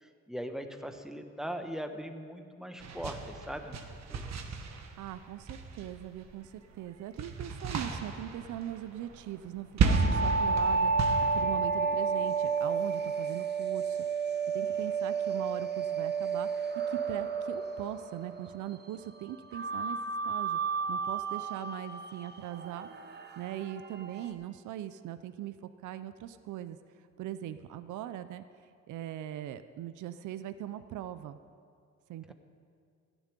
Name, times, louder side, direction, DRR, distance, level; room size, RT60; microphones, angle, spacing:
voice 1, 0.0-3.8 4.1-4.2 32.3-32.4, equal, ahead, 6 dB, 1.1 m, -40 dB
sound 1, 2.8-6.3 6.6-11.4, right 4 dB, 60° right, 1.4 m, -33 dB
voice 2, 5.0-14.1 14.5-20.0 20.2-20.6 20.9-22.9 23.4-25.5 25.8-26.8 27.2-28.4 28.9-31.4 32.1-32.3, right 12 dB, 80° right, 12 dB, 0.6 m, -40 dB
sound 2, 9.9-18.7 19.5-24.3, right 5 dB, 35° right, 1.1 m, -31 dB
13.0 x 7.1 x 9.8 m, 2.3 s
cardioid pair, 90°, 30 cm